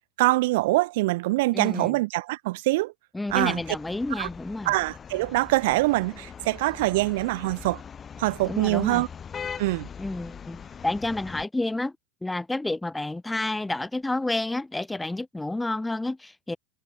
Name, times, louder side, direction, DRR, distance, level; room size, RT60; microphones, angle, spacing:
voice 1, 0.2-2.9 3.3-3.6 4.2-4.3 4.7-7.8 8.2-9.1 9.6-9.9, right 20 dB, 70° right, 0.3 m, -24 dB
voice 2, 1.5-2.0 3.1-4.7 8.5-9.0 10.0-11.9 12.2-16.6, left 2 dB, 10° left, 0.8 m, -30 dB
sound 1, 3.3-11.5, left 7 dB, 30° left, 7.2 m, -41 dB
hypercardioid pair, 90°, 0 cm